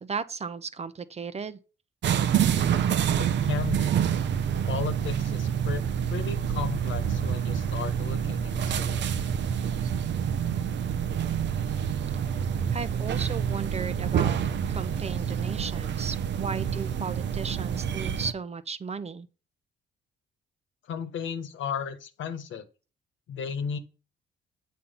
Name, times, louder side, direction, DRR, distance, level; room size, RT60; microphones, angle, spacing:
voice 1, 0.0-1.6 12.7-14.4 14.7-19.3, right 5 dB, 30° right, 0.8 m, -35 dB
sound 1, 2.0-18.3, right 8 dB, 65° right, 0.8 m, -27 dB
voice 2, 3.2-4.0 4.7-9.0 20.8-22.7 23.3-23.8, left 7 dB, 70° left, 1.3 m, -35 dB
8.4 x 4.3 x 5.6 m
cardioid pair, 90°, 20 cm